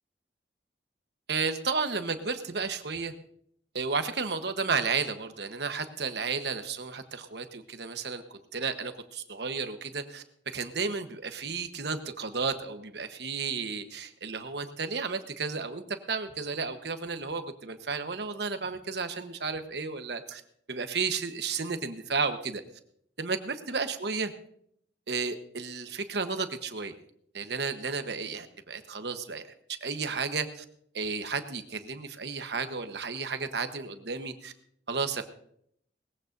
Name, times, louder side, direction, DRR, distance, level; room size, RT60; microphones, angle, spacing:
voice 1, 1.3-3.1 3.7-10.2 10.5-20.4 20.7-22.6 23.2-24.3 25.1-26.9 27.3-29.4 29.8-30.6 30.9-34.5 34.9-35.2, right 4 dB, 65° right, 8 dB, 1.2 m, -33 dB
20.0 x 15.5 x 2.7 m, 0.70 s
head